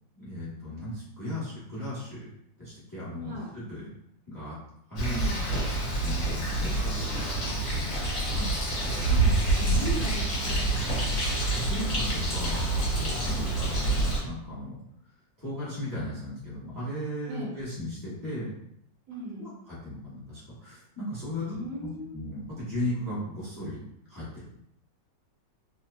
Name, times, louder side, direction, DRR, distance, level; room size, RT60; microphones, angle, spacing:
voice 1, 0.1-2.3 2.6-3.8 4.3-4.6 4.9-5.2 5.5-5.7 6.0-7.5 11.5-14.8 15.4-18.5 19.4-23.8 24.1-24.6, left 1 dB, 25° left, -9 dB, 0.4 m, -36 dB
Bird, 5.0-14.2, right 2 dB, 55° left, 1.2 m, -27 dB
voice 2, 5.0-5.4 8.3-8.5 9.0-11.1 13.2-13.6 17.3-17.6 19.1-19.6 21.4-22.1, right 1 dB, 65° right, -5 dB, 1.0 m, -38 dB
3.0 x 2.1 x 2.3 m, 0.74 s
omnidirectional pair, 2.0 m